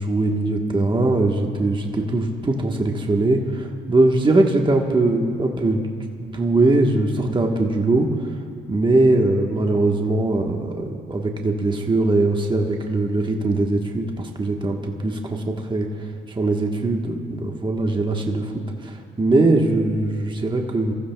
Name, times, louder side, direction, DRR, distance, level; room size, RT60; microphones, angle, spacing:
voice 1, 0.0-5.8 6.2-8.1 8.7-15.9 16.3-20.9, right 2 dB, 25° right, 2 dB, 1.2 m, -21 dB
25.0 x 14.5 x 2.3 m, 2.2 s
cardioid pair, 90°, 20 cm